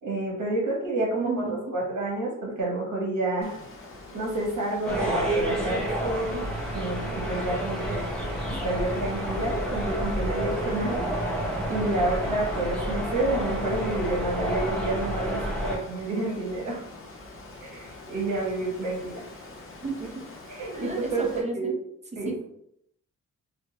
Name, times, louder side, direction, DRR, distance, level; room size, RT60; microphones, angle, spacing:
voice 1, 0.0-3.6 4.1-6.5 6.7-8.0 8.4-11.0 11.7-16.8 17.6-19.2 20.5-21.7 22.1-22.3, right 2 dB, 75° right, -3 dB, 1.2 m, -29 dB
voice 2, 1.2-1.8 8.5-8.6 19.8-20.1 20.7-21.7 22.3-22.4, right 3 dB, 25° right, 2 dB, 0.5 m, -33 dB
Water, 3.4-21.4, left 2 dB, 45° left, 0.7 m, -45 dB
sound 1, 4.8-15.8, equal, 5° left, 0.8 m, -30 dB
4.1 x 2.1 x 2.2 m, 0.75 s
wide cardioid pair, 120°, 30 cm